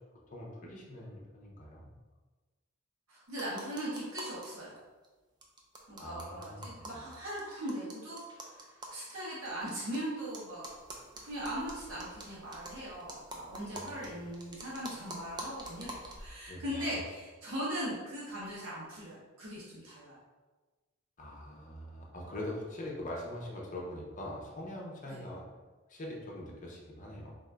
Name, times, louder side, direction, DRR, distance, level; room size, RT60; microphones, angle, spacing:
voice 1, 0.3-1.9 6.0-7.0 13.7-14.2 16.5-16.9 21.2-25.4 25.9-27.3, left 1 dB, 40° left, -2 dB, 0.8 m, -43 dB
voice 2, 3.1-4.8 5.9-10.7 11.2-20.2 25.0-25.2, equal, 75° right, -8 dB, 1.1 m, -39 dB
sound 1, 3.3-4.5 4.8-4.9 5.0-5.1 5.4-10.0 10.3-16.3, right 1 dB, 20° right, 0.5 m, -46 dB
4.0 x 2.6 x 3.4 m, 1.3 s
head